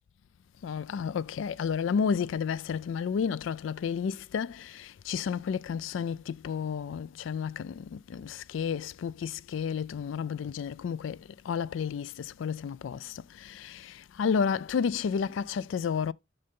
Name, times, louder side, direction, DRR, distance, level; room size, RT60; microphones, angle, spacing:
voice 1, 0.6-11.2 11.5-16.1, left 6 dB, 80° left, 0.3 m, -31 dB
6.6 x 6.5 x 3.6 m
head